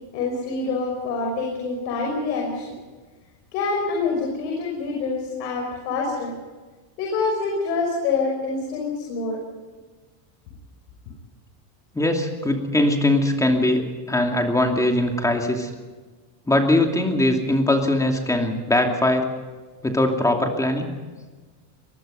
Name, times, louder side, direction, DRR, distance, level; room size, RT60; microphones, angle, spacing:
voice 1, 0.1-2.7 3.5-6.3 7.0-9.4, left 4 dB, 85° left, 0 dB, 6.0 m, -26 dB
voice 2, 11.9-15.7 16.5-19.3 19.8-20.9, left 1 dB, 5° left, 3 dB, 2.6 m, -21 dB
23.0 x 21.0 x 5.5 m, 1.4 s
supercardioid pair, 150°, 49 cm